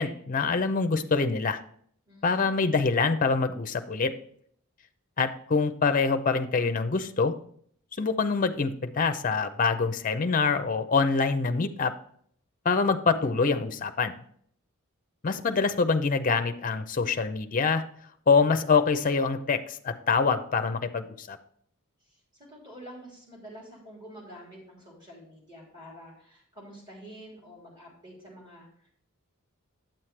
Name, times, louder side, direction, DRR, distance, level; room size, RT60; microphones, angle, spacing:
voice 1, 0.0-1.6 2.2-4.1 5.2-7.3 8.0-11.9 12.6-14.2 15.2-17.8 18.3-21.4, left 4 dB, 35° left, 9 dB, 0.5 m, -25 dB
voice 2, 2.1-2.6 22.0-28.7, equal, 20° right, -5 dB, 3.2 m, -48 dB
8.9 x 7.5 x 3.2 m, 0.62 s
head